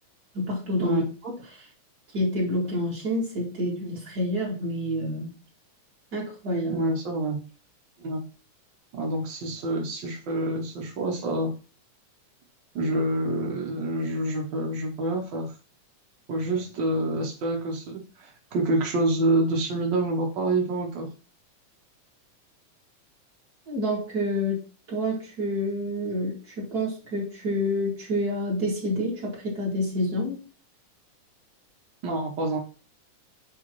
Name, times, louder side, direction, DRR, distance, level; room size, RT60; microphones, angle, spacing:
voice 1, 0.3-1.7 2.1-5.3 6.1-6.8 23.7-24.6 24.9-30.4, equal, 30° right, -5 dB, 2.8 m, -28 dB
voice 2, 6.7-7.4 8.0-8.2 8.9-11.5 12.7-15.5 16.3-21.1 32.0-32.6, right 2 dB, 75° right, 0 dB, 1.0 m, -27 dB
8.5 x 3.7 x 3.1 m, 0.35 s
omnidirectional pair, 3.6 m